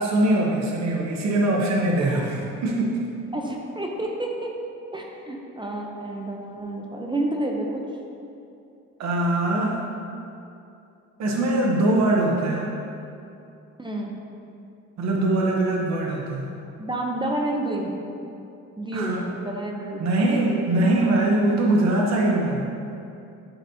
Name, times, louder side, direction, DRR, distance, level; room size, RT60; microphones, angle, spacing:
voice 1, 0.0-3.0 9.0-9.8 11.2-12.8 15.0-16.5 18.9-19.3 20.0-22.7, right 2 dB, 60° right, -2 dB, 0.9 m, -22 dB
voice 2, 3.3-4.5 4.9-7.8 13.8-14.1 16.8-17.9 18.8-20.0, right 1 dB, 15° right, 0 dB, 0.6 m, -29 dB
9.7 x 4.1 x 2.7 m, 2.7 s
cardioid pair, 90°, 30 cm